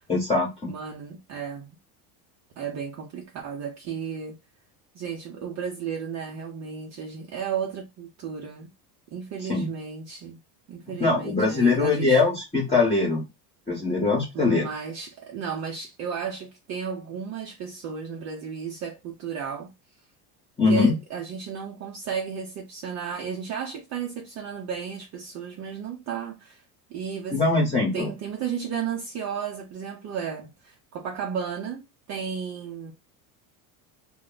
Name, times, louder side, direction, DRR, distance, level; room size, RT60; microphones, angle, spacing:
voice 1, 0.1-0.7 9.5-9.7 10.9-13.2 13.7-14.7 20.6-20.9 27.3-28.1, left 3 dB, 15° left, 1.0 m, -22 dB
voice 2, 0.7-1.7 2.6-4.4 4.9-8.7 9.1-10.4 10.7-12.2 14.3-19.7 20.7-26.6 26.9-27.4 27.9-32.9, right 7 dB, 40° right, 0.6 m, -34 dB
2.1 x 2.1 x 3.8 m
supercardioid pair, 115°, 44 cm